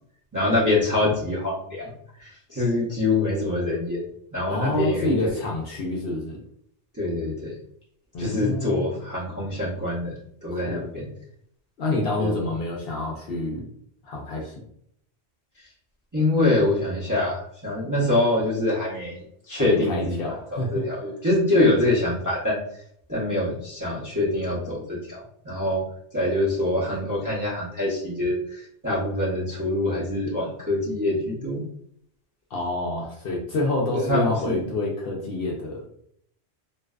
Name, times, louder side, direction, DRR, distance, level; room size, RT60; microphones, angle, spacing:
voice 1, 0.3-1.9 2.2-4.0 4.3-5.4 6.9-7.5 8.2-10.1 10.4-11.1 12.2-12.4 16.1-22.6 23.1-25.8 26.1-31.6 33.9-34.6, left 2 dB, 20° right, -8 dB, 0.5 m, -25 dB
voice 2, 4.5-6.4 8.1-8.9 10.5-10.8 11.8-13.7 14.0-14.5 19.6-20.8 32.5-35.8, left 2 dB, 65° left, -2 dB, 0.7 m, -27 dB
2.5 x 2.2 x 2.3 m, 0.68 s
omnidirectional pair, 1.3 m